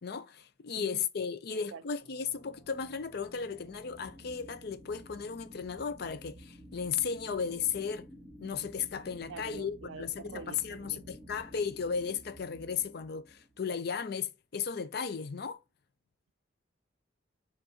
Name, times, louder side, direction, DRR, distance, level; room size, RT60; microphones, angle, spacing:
voice 1, 0.0-8.1 8.4-15.6, left 6 dB, 55° left, 0.5 m, -35 dB
voice 2, 0.7-1.0 1.5-1.8 9.3-11.0, right 6 dB, 85° right, 0.4 m, -46 dB
sound 1, 2.0-13.5, left 1 dB, 5° left, 1.8 m, -57 dB
sound 2, 3.9-13.7, right 1 dB, 30° right, 1.2 m, -54 dB
6.8 x 2.5 x 2.8 m
head